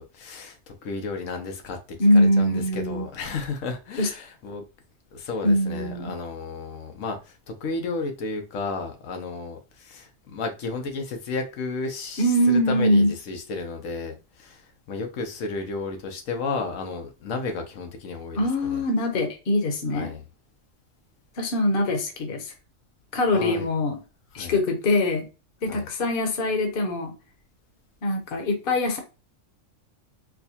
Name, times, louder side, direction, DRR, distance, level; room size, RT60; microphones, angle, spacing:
voice 1, 0.0-1.8 2.1-4.6 5.1-18.8 19.9-20.2 23.3-23.7 24.3-24.6 25.7-25.9, left 4 dB, 85° left, 1.1 m, -33 dB
voice 2, 2.0-3.1 4.0-4.1 5.4-6.1 12.2-13.1 18.4-20.1 21.4-22.5 23.1-24.0 24.3-25.3 25.6-27.1 28.0-29.0, left 1 dB, 50° left, 1.0 m, -23 dB
4.6 x 2.2 x 2.7 m
omnidirectional pair, 1.3 m